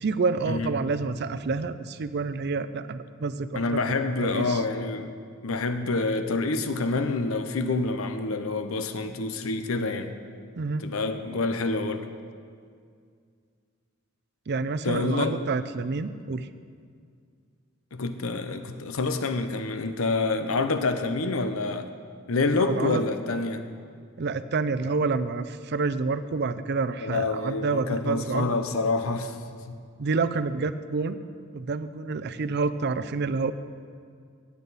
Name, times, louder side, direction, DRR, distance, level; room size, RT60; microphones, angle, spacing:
voice 1, 0.0-4.6 10.6-10.9 14.5-16.5 22.6-23.0 24.2-28.6 30.0-31.2 31.5-33.5, right 4 dB, 55° right, 13 dB, 0.5 m, -28 dB
voice 2, 3.5-5.1 5.4-10.1 10.8-12.1 14.8-15.4 17.9-21.9 22.3-23.7 27.0-29.8, left 3 dB, 85° left, 8 dB, 0.7 m, -27 dB
16.0 x 9.5 x 4.1 m, 2.2 s
head